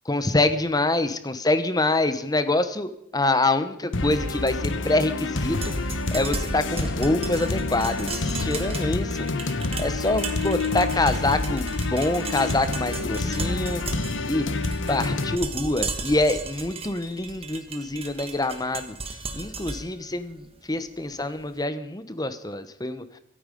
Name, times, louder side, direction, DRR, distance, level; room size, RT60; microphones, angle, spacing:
voice 1, 0.0-5.7 6.1-9.3 9.8-13.8 14.2-14.6 14.9-23.2, left 2 dB, 20° left, 11 dB, 1.0 m, -26 dB
sound 1, 3.9-15.4, left 3 dB, 80° left, 1.1 m, -28 dB
sound 2, 5.4-21.4, right 3 dB, 30° right, 1.5 m, -36 dB
24.5 x 8.9 x 5.3 m, 0.78 s
head